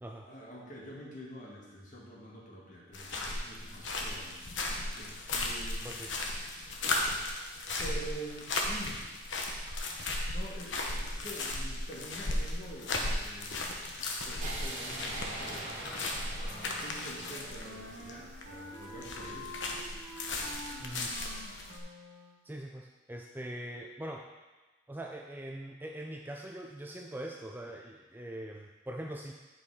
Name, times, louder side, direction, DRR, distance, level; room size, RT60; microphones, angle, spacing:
voice 1, 0.3-6.0 7.8-9.1 10.3-15.8 16.4-19.6, right 1 dB, 40° left, -4 dB, 1.8 m, -47 dB
sound 1, 2.9-21.8, left 2 dB, 70° left, 1.0 m, -36 dB
sound 2, 14.4-18.5, right 1 dB, 40° right, 1.7 m, -42 dB
Wind instrument woodwind instrument, 16.5-22.4, equal, 60° right, 1.2 m, -48 dB
voice 2, 20.8-21.1 22.4-24.3 24.9-29.3, right 1 dB, 10° right, 1 dB, 0.4 m, -42 dB
9.2 x 5.3 x 4.8 m, 1.2 s
head